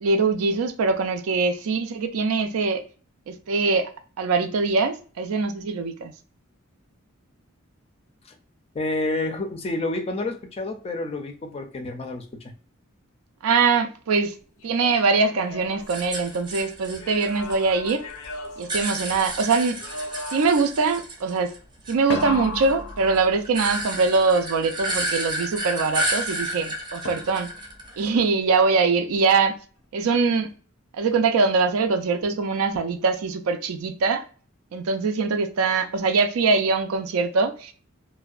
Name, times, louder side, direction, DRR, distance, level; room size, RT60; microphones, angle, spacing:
voice 1, 0.0-2.8 3.3-3.9 4.2-6.1 13.4-14.3 14.6-18.0 18.6-19.8 20.3-21.5 21.9-27.5 28.0-29.5 29.9-30.5 30.9-34.2 34.7-37.7, right 4 dB, 90° right, 0.4 m, -22 dB
voice 2, 8.7-12.5, left 2 dB, 30° left, 0.4 m, -29 dB
sound 1, 14.6-16.5 16.9-19.4 19.8-20.8 22.1-23.7 27.1-27.7, left 2 dB, 85° left, 0.5 m, -35 dB
sound 2, 15.9-17.9 18.2-21.6 21.8-28.2, right 1 dB, 20° right, 0.6 m, -31 dB
2.6 x 2.1 x 2.3 m
head